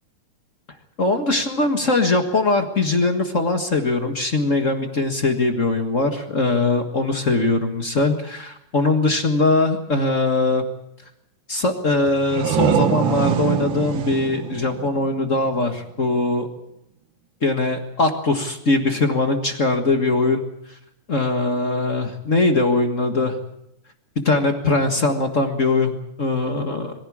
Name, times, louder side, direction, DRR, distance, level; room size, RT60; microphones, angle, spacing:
voice 1, 1.0-10.6 11.5-16.5 17.4-20.4 21.1-23.3 24.1-26.9, left 2 dB, 35° left, 5 dB, 1.3 m, -21 dB
sound 1, 12.1-15.7, right 9 dB, 65° right, 1.2 m, -24 dB
23.0 x 15.5 x 8.6 m, 0.81 s
omnidirectional pair, 3.5 m